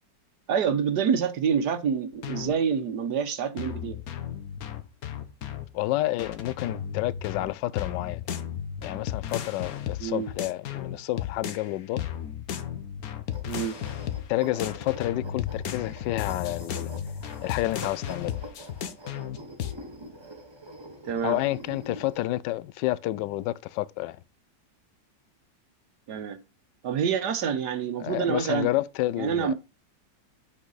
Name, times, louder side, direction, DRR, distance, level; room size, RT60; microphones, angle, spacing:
voice 1, 0.5-4.0 10.0-10.3 13.5-13.8 21.0-21.4 26.1-26.4 26.8-28.7 29.2-29.5, right 7 dB, 65° right, 1.5 m, -27 dB
sound 1, 2.2-2.6 3.6-5.7 6.2-11.7 12.0-14.3 14.6-19.7, left 9 dB, 60° left, 1.2 m, -34 dB
voice 2, 5.7-8.2 8.8-12.0 14.3-16.9 17.4-18.3 21.2-24.2 28.0-29.5, left 16 dB, 75° left, 1.2 m, -29 dB
sound 2, 13.3-22.2, equal, 20° right, 0.9 m, -45 dB
7.6 x 5.9 x 4.0 m
omnidirectional pair, 2.0 m